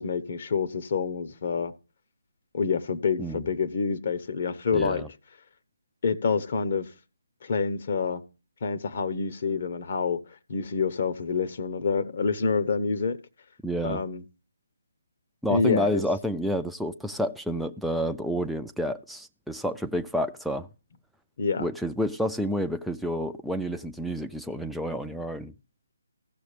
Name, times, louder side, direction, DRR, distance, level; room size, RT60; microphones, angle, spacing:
voice 1, 0.0-1.7 2.5-5.0 6.0-6.9 7.4-8.2 8.6-10.2 10.5-13.2 13.8-14.2 15.5-16.0 21.4-21.7, left 5 dB, 50° left, 1.0 m, -27 dB
voice 2, 4.7-5.1 13.6-14.0 15.4-20.7 21.6-25.5, equal, ahead, 0.4 m, -29 dB
15.5 x 6.4 x 3.3 m
figure-of-eight pair, 155°, 0 cm